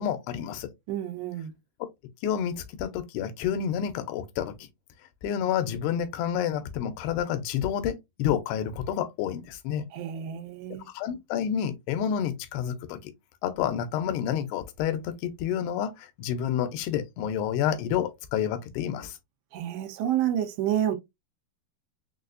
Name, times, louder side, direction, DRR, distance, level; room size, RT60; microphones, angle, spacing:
voice 1, 0.0-0.7 2.2-4.5 5.2-9.8 10.9-13.1 13.4-19.2, left 9 dB, 80° left, 2.7 m, -29 dB
voice 2, 0.9-1.5 9.9-10.9 19.5-21.0, right 11 dB, 85° right, 2.9 m, -29 dB
6.6 x 2.4 x 2.5 m
omnidirectional pair, 4.8 m